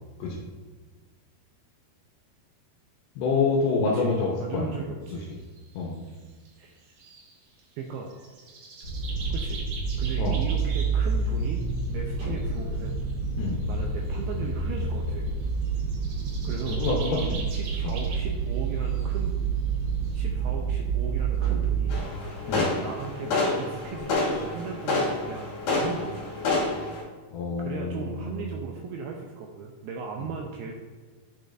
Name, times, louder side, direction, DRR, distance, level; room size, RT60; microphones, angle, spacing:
voice 1, 3.2-4.7 5.8-5.9 10.2-10.4 13.4-13.5 16.4-17.4 17.8-18.0 22.5-22.7 27.3-28.5, left 4 dB, 80° left, -2 dB, 2.7 m, -27 dB
voice 2, 3.9-5.4 6.6-6.8 7.8-8.1 9.3-9.6 10.0-11.6 11.9-13.0 13.7-15.3 16.4-19.3 20.1-22.0 22.8-26.5 27.6-30.7, right 5 dB, 90° right, 0 dB, 2.2 m, -37 dB
sound 1, 5.1-5.8 6.1-6.2 6.5-6.6 6.8-7.7 8.1-11.9 12.3-14.4 14.7-19.2 19.6-19.7 19.9-20.1, right 4 dB, 65° right, 2.7 m, -44 dB
sound 2, 8.8-22.0, right 5 dB, 40° right, 1.6 m, -28 dB
sound 3, 21.9-27.0, left 2 dB, 55° left, 2.9 m, -28 dB
9.5 x 5.3 x 2.5 m, 1.4 s
omnidirectional pair, 5.0 m